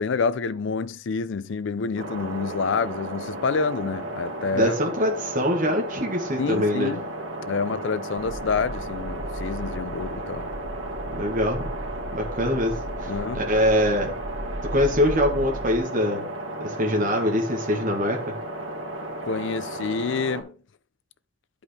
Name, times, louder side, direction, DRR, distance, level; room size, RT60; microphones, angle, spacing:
voice 1, 0.0-4.7 6.4-7.0 7.5-10.5 13.1-13.4 19.2-20.5, left 5 dB, 60° left, 0.4 m, -28 dB
sound 1, 2.0-20.4, right 1 dB, 75° right, 2.1 m, -34 dB
voice 2, 4.5-6.9 11.1-11.7 12.1-14.1 14.6-16.2 16.6-18.4, equal, 40° right, 1.6 m, -24 dB
sound 2, 8.2-15.8, right 1 dB, ahead, 4.7 m, -36 dB
11.0 x 5.1 x 3.3 m
head